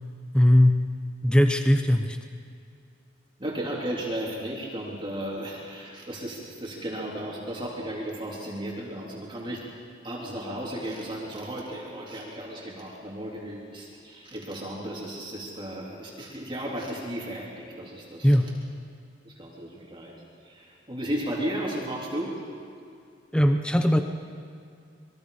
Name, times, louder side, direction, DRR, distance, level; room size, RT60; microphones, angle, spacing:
voice 1, 0.3-0.8 1.2-2.2 18.2-18.5 23.3-24.0, left 1 dB, 5° left, 6 dB, 0.8 m, -19 dB
voice 2, 3.4-9.7 10.0-18.5 19.2-20.1 20.4-22.4, right 1 dB, 25° right, -4 dB, 3.4 m, -34 dB
26.0 x 22.5 x 5.1 m, 2.3 s
head